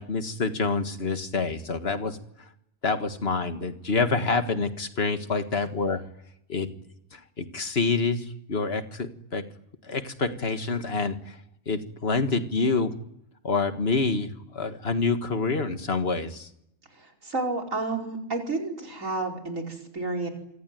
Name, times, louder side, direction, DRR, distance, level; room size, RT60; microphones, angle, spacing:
voice 1, 0.0-2.5 2.8-6.0 6.5-6.7 7.1-9.4 9.8-11.4 11.7-13.0 13.4-16.5, left 4 dB, 50° left, 8 dB, 1.9 m, -27 dB
voice 2, 16.9-20.3, right 3 dB, 80° right, 1 dB, 5.3 m, -31 dB
27.0 x 23.5 x 9.3 m, 0.79 s
omnidirectional pair, 1.4 m